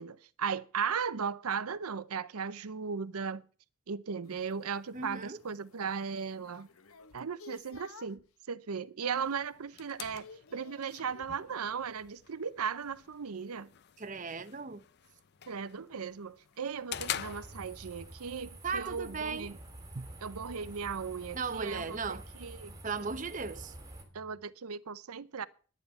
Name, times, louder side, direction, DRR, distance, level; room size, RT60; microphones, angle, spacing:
voice 1, 0.0-3.4 3.9-6.7 7.1-10.3 10.5-13.7 15.5-19.6 20.2-22.7 24.1-25.5, right 6 dB, 90° right, 0.7 m, -37 dB
sound 1, 4.2-8.3 8.8-9.2 9.5-11.6 14.1-22.5, left 3 dB, 80° left, 1.1 m, -58 dB
voice 2, 4.9-5.4 14.0-14.8 18.6-19.5 19.9-20.1 21.3-22.3 22.8-23.7, right 4 dB, 35° right, 0.8 m, -36 dB
sound 2, 9.1-18.1, left 11 dB, 50° left, 0.5 m, -46 dB
sound 3, 16.9-24.0, right 1 dB, 15° right, 3.0 m, -48 dB
11.0 x 9.5 x 6.8 m
head